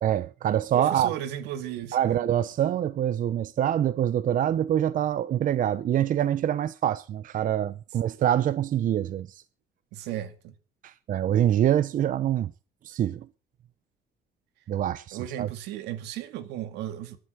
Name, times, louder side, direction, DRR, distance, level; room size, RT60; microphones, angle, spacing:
voice 1, 0.0-1.1 1.9-9.4 10.8-12.5 12.8-13.3 14.7-15.5, right 10 dB, 50° right, 0.8 m, -25 dB
voice 2, 0.7-2.2 9.9-10.5 15.1-17.2, right 11 dB, 90° right, 2.2 m, -35 dB
14.0 x 11.5 x 6.6 m
cardioid pair, 110°, 17 cm